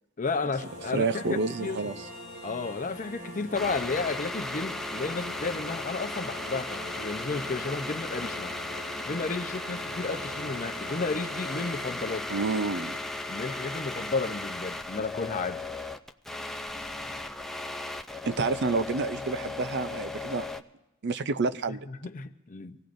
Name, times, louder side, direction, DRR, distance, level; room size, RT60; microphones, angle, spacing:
voice 1, 0.2-2.0 2.4-8.5 9.1-12.3 13.3-15.6 21.7-22.8, left 4 dB, 40° left, 0.7 m, -33 dB
sound 1, 0.6-11.8, equal, 75° right, 6.5 m, -43 dB
voice 2, 0.9-2.1 12.3-13.0 18.3-20.4 21.0-21.9, right 4 dB, 55° right, 0.5 m, -29 dB
sound 2, 3.5-20.6, left 2 dB, ahead, 0.4 m, -36 dB
24.5 x 16.5 x 2.6 m
head